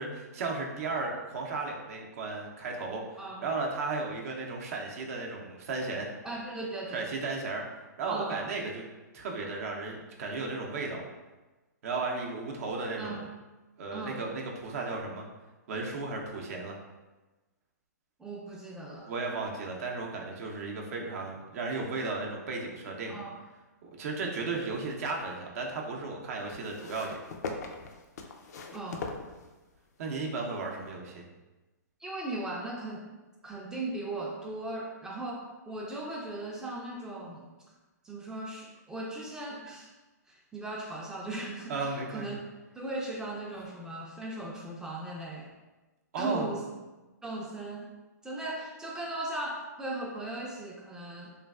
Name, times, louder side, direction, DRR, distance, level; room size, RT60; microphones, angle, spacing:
voice 1, 0.0-6.1 6.9-7.6 8.0-8.8 9.1-11.0 11.8-13.2 13.8-15.2 15.7-16.8 19.1-23.2 23.8-27.2 30.0-31.3 41.7-42.4 46.1-46.5, right 3 dB, 55° right, 0 dB, 0.5 m, -35 dB
voice 2, 6.2-7.1 8.0-8.5 13.0-13.3 13.9-14.2 18.2-19.1 23.1-23.4 28.7-29.1 32.0-33.0 33.4-37.5 38.0-39.9 40.3-42.4 42.7-45.5 46.2-46.6 47.2-47.9 48.2-51.4, right 2 dB, 5° right, -2 dB, 0.4 m, -38 dB
sound 1, 24.5-25.4 26.5-29.9 30.8-30.9, left 4 dB, 65° left, 0.4 m, -41 dB
3.2 x 2.3 x 2.3 m, 1.2 s
hypercardioid pair, 130°, 10 cm